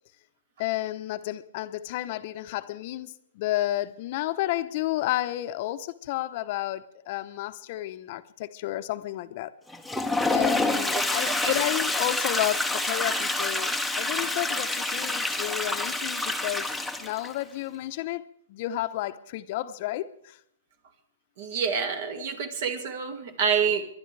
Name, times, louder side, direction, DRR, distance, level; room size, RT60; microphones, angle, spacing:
voice 1, 0.6-9.5 10.3-16.7 17.0-20.4 22.2-22.3, left 15 dB, 45° left, 10 dB, 0.9 m, -31 dB
Toilet flush, 9.7-17.3, left 2 dB, ahead, 0.9 m, -27 dB
voice 2, 21.4-23.9, right 6 dB, 55° right, 6 dB, 2.1 m, -27 dB
30.0 x 11.5 x 3.4 m, 0.69 s
hypercardioid pair, 145°, 0 cm